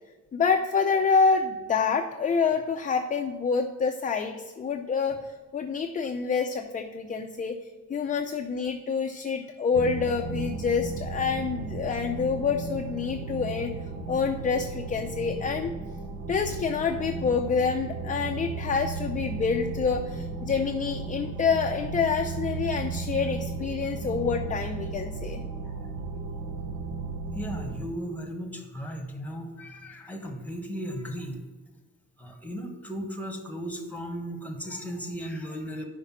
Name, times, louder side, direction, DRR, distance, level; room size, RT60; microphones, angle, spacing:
voice 1, 0.3-7.6 7.9-13.7 14.1-15.7 16.3-25.4, left 5 dB, 25° left, 4 dB, 0.5 m, -27 dB
sound 1, 9.7-27.9, right 4 dB, 65° right, 0.9 m, -35 dB
voice 2, 27.3-31.4 32.2-35.8, equal, 5° left, 4 dB, 1.2 m, -36 dB
5.6 x 5.0 x 5.9 m, 1.3 s
cardioid pair, 90°, 30 cm